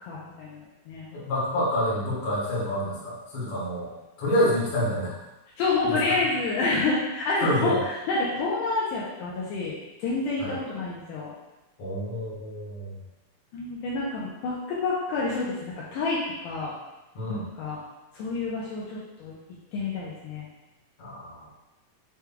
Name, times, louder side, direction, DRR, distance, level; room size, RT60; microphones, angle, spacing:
voice 1, 0.0-1.1 5.6-11.3 13.5-16.2 16.4-16.7 17.3-17.8 18.1-19.4 19.7-20.5, left 3 dB, 80° left, -6 dB, 2.1 m, -28 dB
voice 2, 1.1-3.9 4.2-5.1 5.8-6.1 7.4-7.8 10.4-10.5 11.8-12.9 17.2-17.4 21.0-21.5, equal, 55° left, -6 dB, 2.0 m, -28 dB
6.8 x 3.2 x 2.3 m, 1.0 s
omnidirectional pair, 4.0 m